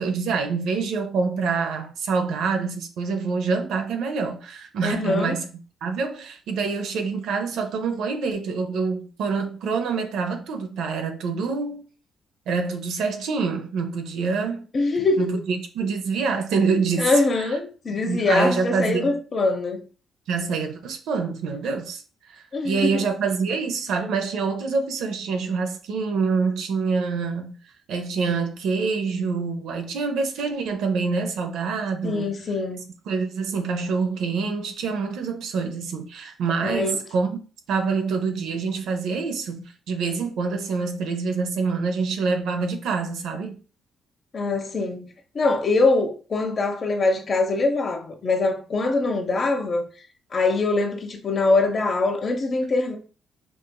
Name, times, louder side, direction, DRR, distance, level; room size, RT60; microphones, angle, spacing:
voice 1, 0.0-5.4 5.8-11.8 12.5-14.7 15.2-17.6 17.9-19.1 20.3-22.0 22.3-27.6 27.9-32.3 33.1-37.3 37.7-43.6, right 4 dB, 80° right, 0.6 m, -26 dB
voice 2, 4.8-5.4 14.7-15.4 17.0-19.8 22.5-23.1 32.0-32.9 36.6-37.0 44.3-45.1 45.3-49.9 50.3-53.0, left 3 dB, 45° left, 0.8 m, -23 dB
4.9 x 2.5 x 2.2 m
cardioid pair, 90°, 0 cm